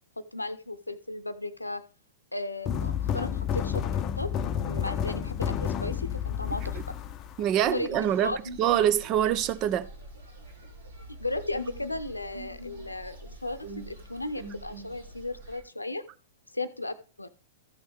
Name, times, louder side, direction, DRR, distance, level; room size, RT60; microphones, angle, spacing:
voice 1, 0.2-1.8 2.3-3.8 4.2-4.3 4.6-6.8 7.7-8.4 11.2-16.0 16.5-17.3, left 2 dB, 85° left, 0.7 m, -35 dB
sound 1, 2.7-7.8, left 8 dB, 30° left, 0.7 m, -30 dB
voice 2, 7.4-9.9, right 11 dB, 35° right, 0.6 m, -25 dB
sound 2, 7.6-15.6, right 1 dB, 65° right, 2.7 m, -44 dB
14.0 x 6.3 x 3.4 m
figure-of-eight pair, 100°, 0 cm